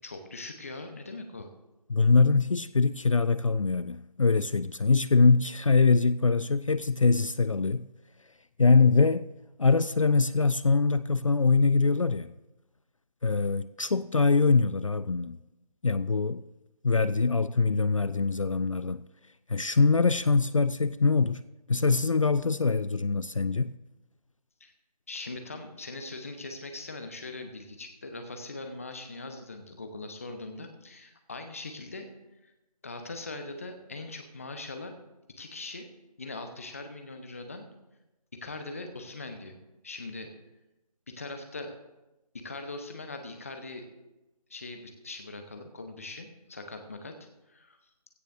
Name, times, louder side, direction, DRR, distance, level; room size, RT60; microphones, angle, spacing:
voice 1, 0.0-1.5 24.6-24.7 25.1-32.1 32.4-32.5 32.8-35.0 35.4-35.9 36.2-37.7 38.3-39.6 39.8-40.3 41.1-41.7 42.3-43.9 44.5-47.2 47.5-47.8, left 2 dB, 20° left, 0.9 m, -41 dB
voice 2, 1.9-7.9 8.6-9.3 9.6-12.3 13.2-15.4 15.8-16.4 16.8-19.1 19.5-21.4 21.7-23.8, left 4 dB, 55° left, 0.4 m, -23 dB
16.5 x 14.0 x 2.6 m
figure-of-eight pair, 160°, 20 cm